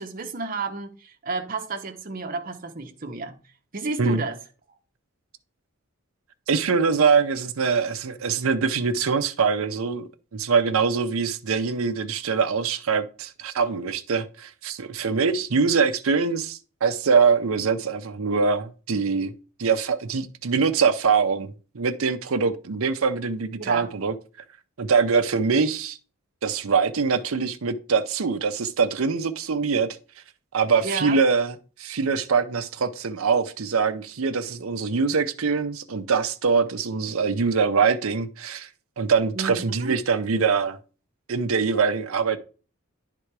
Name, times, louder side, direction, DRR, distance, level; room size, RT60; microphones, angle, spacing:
voice 1, 0.0-3.4 3.7-4.4 4.7-4.8 23.6-23.9 30.8-31.2 39.3-40.0, right 3 dB, 40° right, 0.8 m, -31 dB
voice 2, 6.5-19.3 19.6-24.1 24.8-26.0 26.4-29.9 30.5-38.7 39.0-40.8 41.3-42.4, right 5 dB, 70° right, 0.6 m, -23 dB
9.9 x 3.8 x 4.6 m
head